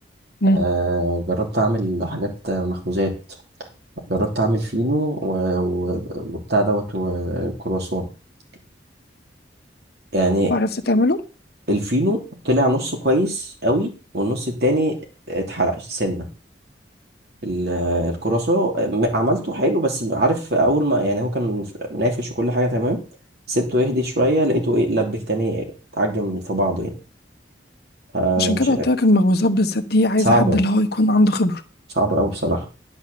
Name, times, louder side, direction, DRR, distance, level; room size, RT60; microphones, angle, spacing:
voice 1, 0.5-3.1 4.1-8.1 10.1-10.5 11.7-15.0 15.3-16.2 17.4-23.0 23.5-25.6 26.0-26.9 28.1-28.8 30.2-30.6 32.0-32.6, right 1 dB, 60° right, 3.0 m, -22 dB
voice 2, 10.5-11.2 28.4-31.6, left 1 dB, 60° left, 1.1 m, -18 dB
11.5 x 5.3 x 6.9 m
head